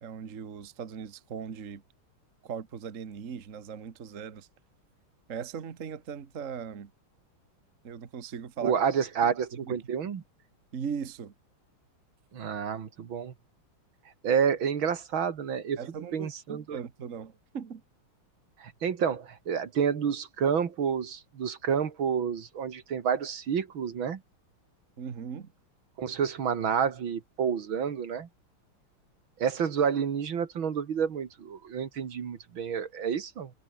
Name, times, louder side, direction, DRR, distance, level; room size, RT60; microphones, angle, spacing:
voice 1, 0.0-1.8 2.4-4.5 5.3-6.9 7.8-8.8 9.2-9.3 9.7-9.8 10.7-11.3 15.8-17.8 25.0-25.5, right 7 dB, 40° right, 1.6 m, -39 dB
voice 2, 8.6-10.2 12.3-13.3 14.2-15.8 16.1-16.8 18.6-24.2 26.0-28.3 29.4-33.5, right 7 dB, 65° right, 2.5 m, -29 dB
omnidirectional pair, 2.4 m